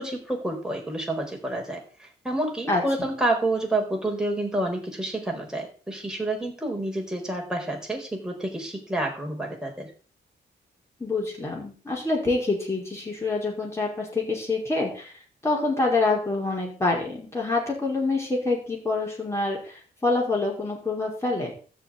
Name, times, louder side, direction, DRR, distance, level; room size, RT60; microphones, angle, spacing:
voice 1, 0.0-9.9, right 1 dB, 5° right, 0 dB, 4.6 m, -29 dB
voice 2, 11.0-15.1 15.4-21.5, left 3 dB, 15° left, -2 dB, 5.2 m, -26 dB
13.5 x 5.8 x 9.5 m, 0.40 s
wide cardioid pair, 150°, 19 cm